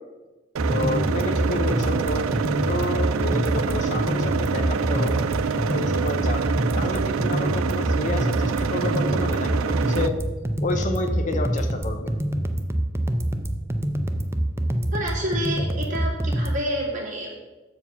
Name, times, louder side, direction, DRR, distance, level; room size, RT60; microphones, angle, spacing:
sound 1, 0.6-16.6, right 1 dB, 15° right, 0.4 m, -26 dB
sound 2, 0.6-10.1, right 6 dB, 85° right, 0.4 m, -26 dB
voice 1, 0.7-2.2 2.6-5.2 5.5-6.4 6.7-10.1 10.6-12.1, left 2 dB, 40° left, 6 dB, 0.6 m, -30 dB
voice 2, 14.9-17.3, equal, 40° right, -3 dB, 2.3 m, -29 dB
7.0 x 5.0 x 5.5 m, 1.2 s
head